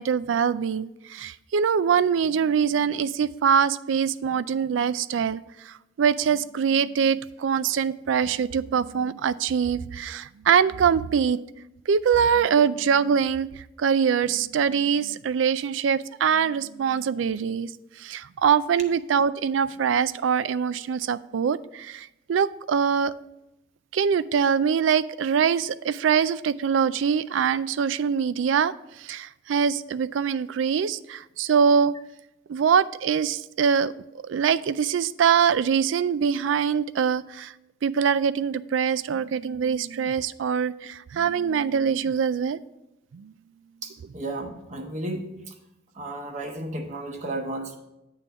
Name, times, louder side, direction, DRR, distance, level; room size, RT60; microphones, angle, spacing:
voice 1, 0.0-11.4 11.9-13.5 13.8-17.7 18.0-23.1 23.9-31.9 32.5-33.9 34.3-37.5 37.8-42.6 43.1-43.3, right 7 dB, 80° right, 17 dB, 0.4 m, -23 dB
voice 2, 43.8-45.5 45.9-47.8, right 1 dB, 40° right, 2 dB, 1.1 m, -33 dB
9.0 x 3.8 x 7.0 m, 0.90 s
head